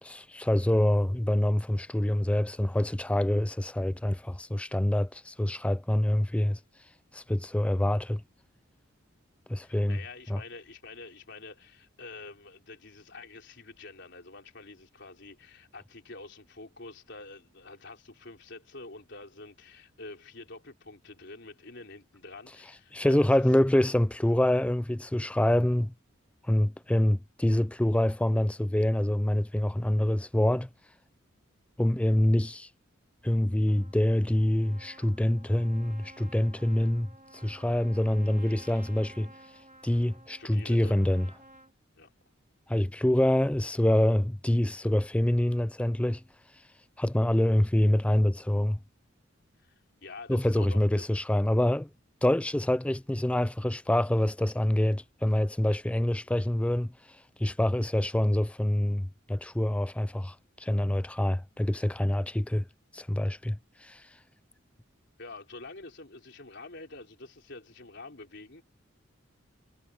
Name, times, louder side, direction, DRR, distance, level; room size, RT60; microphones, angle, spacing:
voice 1, 0.0-6.6 7.1-8.2 9.5-10.0 10.3-10.4 22.9-25.9 26.4-30.7 31.8-32.7 33.2-39.3 39.8-41.3 42.7-46.2 47.0-48.8 50.3-51.9 52.2-56.9 57.4-62.6 62.9-64.0, left 1 dB, 5° left, 0.3 m, -26 dB
voice 2, 9.6-23.2 40.4-41.0 42.0-42.1 49.6-51.1 65.2-68.6, left 3 dB, 60° left, 4.2 m, -47 dB
Trumpet, 33.7-41.7, right 1 dB, 35° right, 2.4 m, -53 dB
head